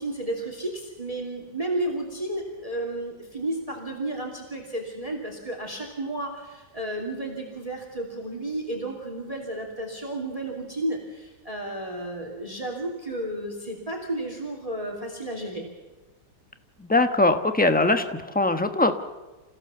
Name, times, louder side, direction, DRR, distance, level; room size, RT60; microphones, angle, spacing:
voice 1, 0.0-15.6, right 1 dB, 20° right, 2 dB, 2.9 m, -32 dB
voice 2, 16.8-18.9, left 2 dB, 5° left, 8 dB, 0.9 m, -21 dB
28.0 x 16.0 x 6.9 m, 1.2 s
omnidirectional pair, 1.9 m